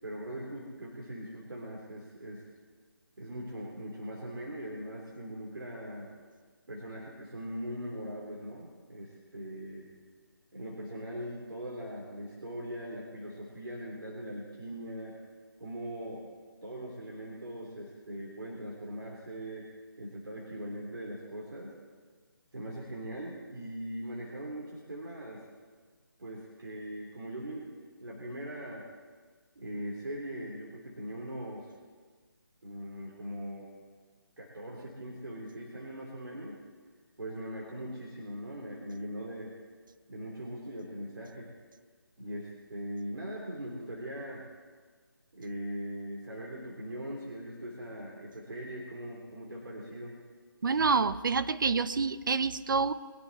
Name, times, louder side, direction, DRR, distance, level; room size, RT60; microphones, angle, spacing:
voice 1, 0.0-2.4 3.2-6.1 6.7-9.9 10.5-15.2 15.6-16.3 16.6-19.7 20.0-21.7 22.5-25.4 26.2-27.7 28.0-28.8 29.6-31.7 32.6-33.7 34.4-36.6 37.2-39.5 40.1-41.5 42.2-44.4 45.3-50.2, equal, 75° right, -4 dB, 3.6 m, -40 dB
voice 2, 50.6-52.9, right 5 dB, 60° right, 13 dB, 0.8 m, -27 dB
22.5 x 11.0 x 4.2 m, 1.5 s
figure-of-eight pair, 160°, 12 cm